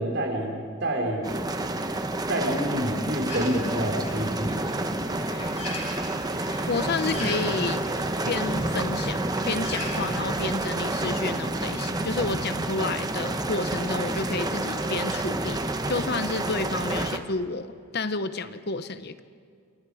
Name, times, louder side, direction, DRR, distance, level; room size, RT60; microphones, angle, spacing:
voice 1, 0.0-1.3 2.3-4.6, equal, 55° right, 1 dB, 4.0 m, -28 dB
sound 1, 1.2-17.2, right 2 dB, 20° right, 0.9 m, -29 dB
Bird, 3.3-10.1, left 2 dB, 30° left, 7.5 m, -40 dB
voice 2, 6.7-7.8 8.3-19.2, left 3 dB, 50° left, 12 dB, 0.8 m, -30 dB
28.0 x 27.5 x 4.9 m, 2.2 s
head